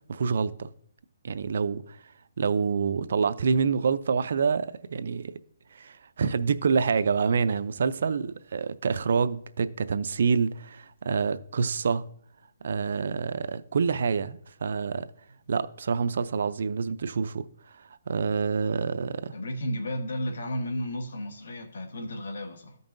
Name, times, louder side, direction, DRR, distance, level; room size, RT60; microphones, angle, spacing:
voice 1, 0.1-0.7 1.2-2.0 2.4-5.4 5.7-12.1 12.6-15.1 15.5-17.5 18.1-19.3, right 5 dB, 60° right, 0.4 m, -27 dB
voice 2, 19.3-22.8, equal, 75° left, 1.1 m, -33 dB
14.0 x 5.4 x 2.6 m
hypercardioid pair, 170°, 0 cm